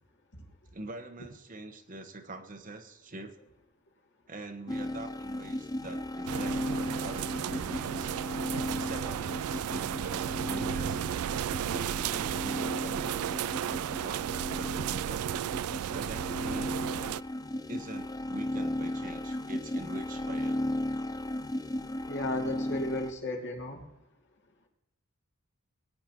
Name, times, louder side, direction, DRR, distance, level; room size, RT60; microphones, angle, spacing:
voice 1, 0.7-3.4 4.3-6.6 7.0-8.2 8.7-11.1 11.7-15.3 15.9-16.8 17.7-20.6, right 2 dB, 40° right, 6 dB, 1.2 m, -44 dB
sound 1, 4.7-23.1, left 1 dB, 15° left, 0.5 m, -36 dB
sound 2, 6.3-17.2, right 10 dB, 80° right, 0.3 m, -34 dB
voice 2, 22.1-23.9, left 2 dB, 55° left, 1 dB, 2.5 m, -34 dB
20.0 x 9.6 x 3.0 m, 0.85 s
head